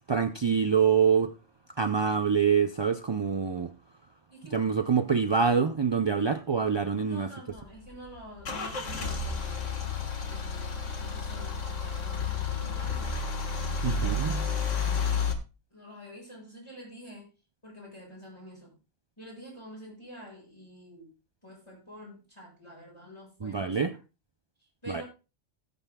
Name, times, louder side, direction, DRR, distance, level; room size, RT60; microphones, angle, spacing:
voice 1, 0.1-1.3 1.8-3.7 4.5-7.3 13.8-14.3 23.4-23.9 24.9-25.0, right 6 dB, 45° right, 9 dB, 0.3 m, -25 dB
voice 2, 4.3-4.7 7.0-9.9 10.2-13.2 13.8-15.3 15.7-17.3 17.6-18.8 19.2-21.1 21.4-24.0 24.6-25.0, equal, 25° left, -3 dB, 7.5 m, -48 dB
Car / Engine starting / Idling, 7.5-15.3, left 4 dB, 90° left, 1.9 m, -31 dB
18.0 x 9.1 x 2.3 m, 0.30 s
omnidirectional pair, 1.2 m